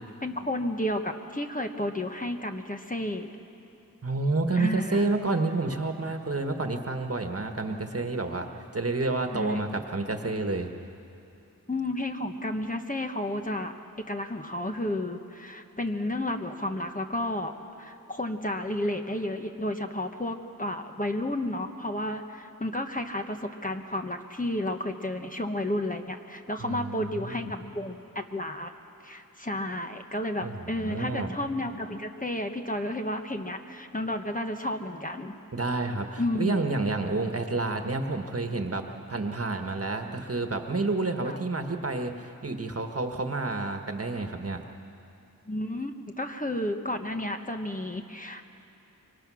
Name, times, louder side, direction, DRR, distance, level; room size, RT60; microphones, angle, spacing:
voice 1, 0.2-3.3 4.6-5.2 9.3-9.7 11.7-13.7 14.1-17.5 17.8-28.7 29.0-35.3 36.2-36.6 41.2-41.4 45.5-48.4, left 1 dB, 25° left, 4 dB, 1.3 m, -32 dB
voice 2, 4.0-8.5 8.7-10.7 26.6-27.5 30.4-31.3 35.5-38.8 39.1-44.6, right 3 dB, 45° right, 5 dB, 1.5 m, -29 dB
24.5 x 24.0 x 6.3 m, 2.7 s
wide cardioid pair, 70°, 33 cm